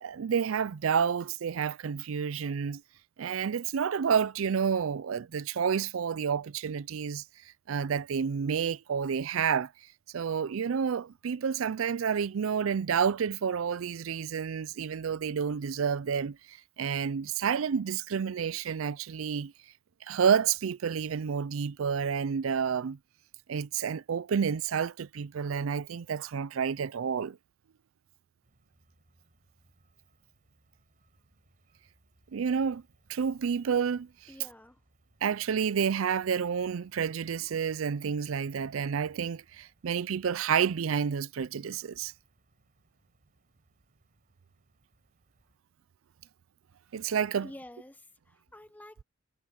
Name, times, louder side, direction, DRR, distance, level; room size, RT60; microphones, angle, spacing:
voice 1, 0.0-2.8 3.2-7.2 7.7-9.7 10.1-19.5 20.0-23.0 23.5-27.4 32.3-32.8 33.1-34.1 35.2-42.1 46.9-47.5, right 7 dB, 75° right, 0.4 m, -29 dB
sound 1, 28.4-45.6, right 1 dB, 40° right, 6.3 m, -69 dB
voice 2, 34.3-34.8 47.4-49.0, left 1 dB, 10° left, 1.2 m, -49 dB
head